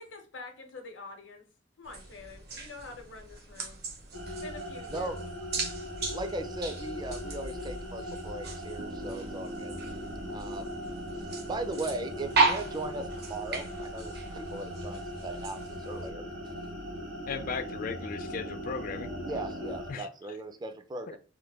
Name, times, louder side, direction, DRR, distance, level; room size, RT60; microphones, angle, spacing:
voice 1, 0.0-1.4 1.8-3.8 4.4-5.2, left 3 dB, 80° left, 0.7 m, -46 dB
sound 1, 1.8-16.1, right 4 dB, 55° right, 0.8 m, -36 dB
sound 2, 4.1-19.9, equal, 75° right, 1.5 m, -40 dB
voice 2, 6.1-9.7 10.3-10.8 11.5-16.5 19.2-21.2, right 2 dB, 20° right, 0.4 m, -38 dB
Piano, 8.8-19.8, right 2 dB, 90° right, 0.5 m, -47 dB
voice 3, 17.3-19.1 19.9-20.1 21.1-21.2, left 5 dB, 45° left, 0.4 m, -36 dB
3.1 x 2.2 x 3.4 m
head